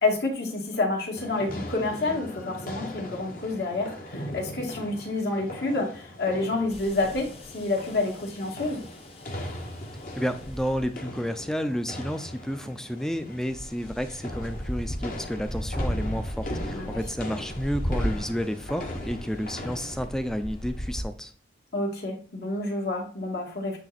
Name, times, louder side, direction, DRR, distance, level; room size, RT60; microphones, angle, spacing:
voice 1, 0.0-8.8 16.7-17.0 21.7-23.8, left 2 dB, 65° left, 0 dB, 2.3 m, -28 dB
sound 1, 1.2-20.1, left 1 dB, 50° left, 1.4 m, -39 dB
sound 2, 6.7-21.0, equal, 30° left, 1.0 m, -36 dB
voice 2, 10.2-21.3, equal, 5° left, 9 dB, 0.5 m, -31 dB
9.0 x 3.4 x 4.2 m, 0.42 s
head